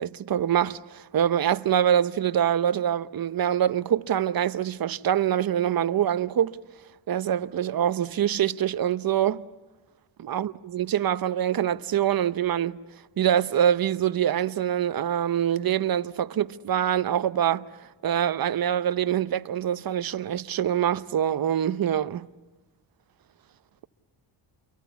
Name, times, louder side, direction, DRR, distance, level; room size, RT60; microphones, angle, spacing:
voice 1, 0.0-6.6 7.1-9.4 10.2-12.8 13.2-17.6 18.0-22.3, right 10 dB, 50° right, 0.9 m, -25 dB
29.0 x 23.5 x 8.1 m
cardioid pair, 100°, 44 cm